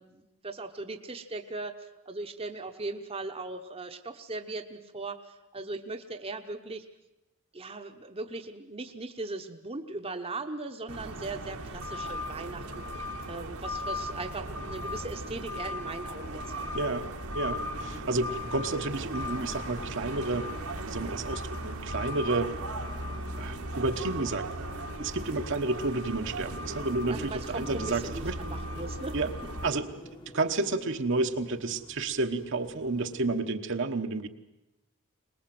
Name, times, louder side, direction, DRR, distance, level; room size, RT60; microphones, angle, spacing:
voice 1, 0.0-6.8 7.5-12.8 13.3-16.7 27.1-29.2, right 3 dB, 25° right, 5 dB, 1.0 m, -39 dB
sound 1, 10.9-29.7, equal, 90° right, 2.5 m, -37 dB
voice 2, 16.7-17.1 17.3-20.5 20.8-22.5 23.4-24.5 25.0-28.3 29.1-29.3 29.6-30.0 30.3-34.3, right 3 dB, 60° right, 5 dB, 1.2 m, -30 dB
sound 2, 17.4-33.4, left 1 dB, 20° left, 1.1 m, -50 dB
23.0 x 20.5 x 7.8 m, 0.97 s
head